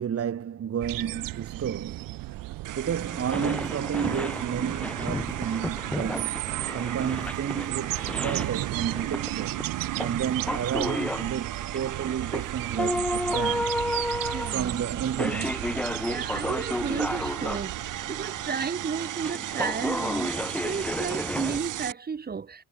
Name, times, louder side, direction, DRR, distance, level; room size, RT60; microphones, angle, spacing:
voice 1, 0.0-2.2 2.7-9.6 10.0-13.7 14.5-15.7, right 9 dB, 45° right, 3.7 m, -31 dB
sound 1, 0.8-18.0, right 18 dB, 90° right, 1.5 m, -35 dB
sound 2, 2.3-2.4 2.9-17.6 18.0-21.6, left 1 dB, 5° left, 1.1 m, -32 dB
sound 3, 2.6-21.9, right 13 dB, 65° right, 3.3 m, -36 dB
voice 2, 14.3-14.8 16.0-22.6, right 5 dB, 30° right, 2.3 m, -33 dB
cardioid pair, 135°, 33 cm